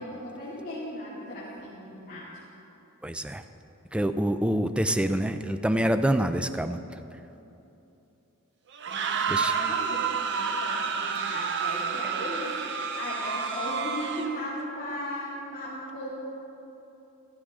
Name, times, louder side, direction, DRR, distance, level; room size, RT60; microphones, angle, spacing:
voice 1, 0.0-2.3 8.9-16.1, equal, 40° left, -10 dB, 2.5 m, -37 dB
voice 2, 3.0-3.4 3.9-6.8 9.3-9.5, right 1 dB, 5° right, 9 dB, 0.3 m, -26 dB
sound 1, 8.7-14.5, right 6 dB, 55° right, 0.7 m, -30 dB
15.0 x 13.0 x 3.7 m, 2.9 s
head